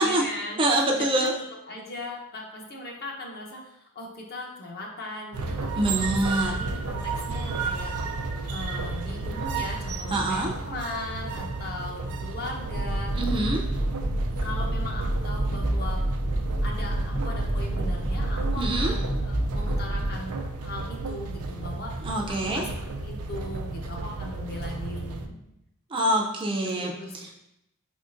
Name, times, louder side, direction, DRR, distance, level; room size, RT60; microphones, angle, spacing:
voice 1, 0.0-0.6 1.0-1.3 1.7-7.9 8.5-13.5 14.4-16.0 16.6-25.5 26.7-27.3, left 1 dB, 45° left, 0 dB, 0.8 m, -38 dB
voice 2, 0.6-1.3 5.8-6.5 10.1-10.5 13.1-13.6 18.6-18.9 22.0-22.6 25.9-26.9 27.2-27.3, right 1 dB, 25° right, 0 dB, 0.5 m, -25 dB
sound 1, 5.3-25.3, right 3 dB, 80° right, 0.5 m, -33 dB
sound 2, 12.7-20.1, right 1 dB, 65° left, 1.6 m, -28 dB
4.9 x 3.6 x 2.6 m, 0.84 s
head